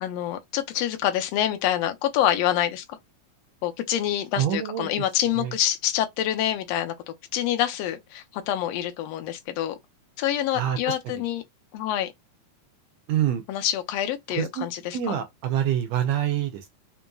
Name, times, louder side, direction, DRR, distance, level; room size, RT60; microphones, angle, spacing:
voice 1, 0.0-2.8 3.6-6.9 7.3-9.8 10.2-11.4 11.7-12.1 13.5-15.2, left 11 dB, 70° left, 1.7 m, -26 dB
voice 2, 4.4-4.9 5.4-5.5 10.6-10.8 13.1-13.4 14.4-14.7 14.9-16.7, right 10 dB, 75° right, 1.7 m, -25 dB
5.2 x 2.8 x 2.3 m
omnidirectional pair, 3.5 m